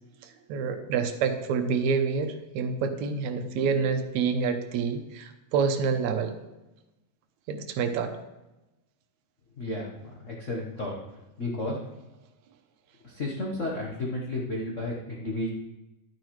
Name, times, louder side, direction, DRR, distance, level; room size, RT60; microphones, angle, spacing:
voice 1, 0.5-6.4 7.5-8.1, right 5 dB, 80° right, 7 dB, 2.1 m, -27 dB
voice 2, 9.6-10.9 11.4-11.8 13.0-15.5, left 2 dB, 90° left, -3 dB, 0.6 m, -32 dB
11.0 x 9.4 x 3.2 m, 1.0 s
omnidirectional pair, 3.3 m